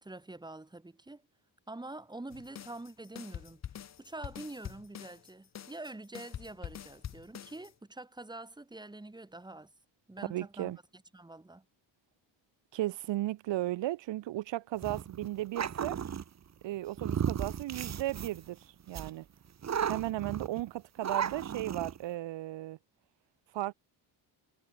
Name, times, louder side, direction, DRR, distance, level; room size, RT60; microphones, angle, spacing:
voice 1, 0.0-1.2 1.7-3.6 4.0-9.7 10.1-11.6, right 2 dB, 10° right, 2.3 m, -46 dB
sound 1, 2.3-7.7, left 9 dB, 35° left, 0.7 m, -45 dB
voice 2, 10.3-10.8 12.7-16.0 16.6-18.6 18.9-19.3 19.9-22.8 23.5-23.7, right 15 dB, 70° right, 0.7 m, -35 dB
sound 2, 14.8-16.2 17.0-18.5 18.9-19.1 19.6-20.6 21.0-22.0, right 8 dB, 35° right, 1.1 m, -34 dB
wide cardioid pair, 155°, 46 cm